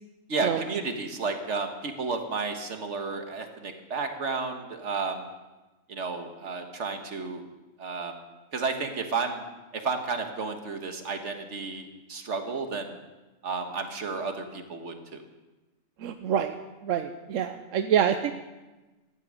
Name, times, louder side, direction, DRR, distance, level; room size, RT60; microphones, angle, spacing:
voice 1, 0.3-5.3 5.9-7.4 7.8-8.2 8.5-9.4 9.7-13.0 13.4-15.2, right 4 dB, 65° right, 5 dB, 1.8 m, -32 dB
voice 2, 16.0-16.6 16.8-18.3, right 9 dB, 85° right, 8 dB, 1.1 m, -26 dB
15.0 x 11.5 x 6.4 m, 1.1 s
omnidirectional pair, 1.3 m